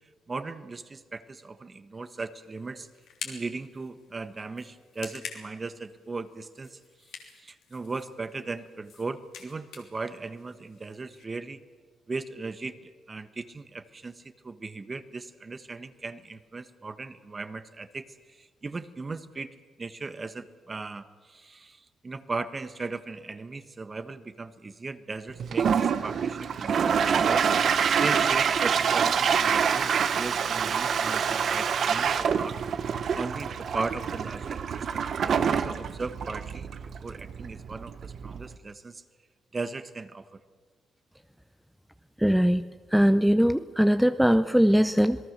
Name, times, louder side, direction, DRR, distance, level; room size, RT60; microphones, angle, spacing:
voice 1, 0.3-2.9 3.2-6.8 7.4-11.6 12.1-27.4 27.9-32.6 33.1-36.7 37.0-39.0 39.5-40.4, right 3 dB, 30° right, 11 dB, 1.3 m, -37 dB
sound 1, 2.0-11.2, left 7 dB, 85° left, 3.3 m, -47 dB
Toilet flush, 25.4-38.5, right 7 dB, 60° right, 1.0 m, -26 dB
voice 2, 42.2-45.2, equal, ahead, 11 dB, 0.6 m, -21 dB
27.5 x 18.5 x 6.7 m, 1.5 s
cardioid pair, 85°, 0 cm